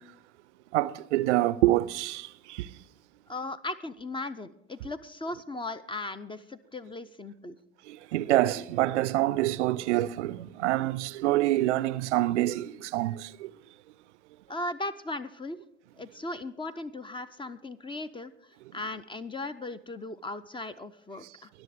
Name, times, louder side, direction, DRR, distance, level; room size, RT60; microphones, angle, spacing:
voice 1, 0.7-2.7 7.9-13.5, right 16 dB, 70° right, 0.5 m, -26 dB
voice 2, 3.3-7.6 14.5-15.6 16.0-18.3 18.7-21.5, left 2 dB, 15° left, 0.6 m, -37 dB
21.0 x 7.1 x 5.0 m
figure-of-eight pair, 55°, 36 cm